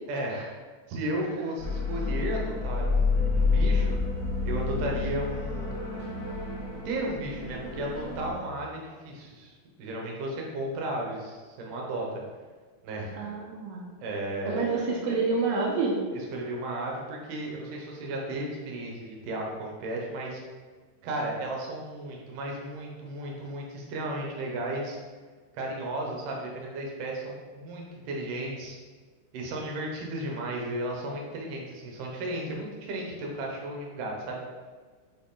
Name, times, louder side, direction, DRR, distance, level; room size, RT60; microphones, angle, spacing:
voice 1, 0.9-4.0 4.4-5.9 6.9-12.1 12.8-13.1 14.0-14.7 16.3-20.4 21.0-25.0 25.5-28.8 29.3-34.4, right 1 dB, 70° right, -1 dB, 2.1 m, -34 dB
sound 1, 1.6-8.3, left 4 dB, 45° left, 1.3 m, -28 dB
voice 2, 13.1-13.8 14.5-16.0, right 4 dB, 85° right, -2 dB, 1.9 m, -28 dB
8.1 x 3.9 x 3.9 m, 1.5 s
omnidirectional pair, 5.1 m